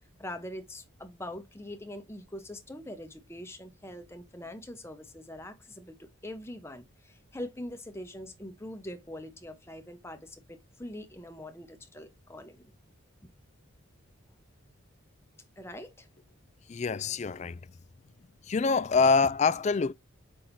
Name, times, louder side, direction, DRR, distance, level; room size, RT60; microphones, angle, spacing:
voice 1, 0.2-12.7 15.6-16.1, left 1 dB, 10° left, 0.9 m, -43 dB
voice 2, 16.7-17.7 18.4-19.9, left 4 dB, 35° left, 0.3 m, -25 dB
6.3 x 5.5 x 2.7 m
head